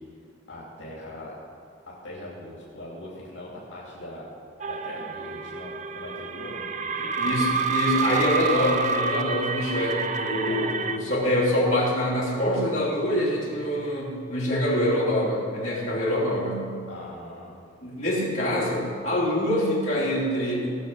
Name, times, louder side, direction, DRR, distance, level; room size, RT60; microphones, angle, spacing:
voice 1, 0.5-1.3 2.0-4.3 4.6-7.4 10.4-10.6 16.9-17.5, left 1 dB, 65° left, -5 dB, 2.6 m, -41 dB
sound 1, 4.6-11.0, right 4 dB, 35° right, 0.5 m, -28 dB
voice 2, 7.2-16.7 17.8-20.7, left 1 dB, 35° left, -7 dB, 3.3 m, -25 dB
18.0 x 6.7 x 5.5 m, 2.3 s
head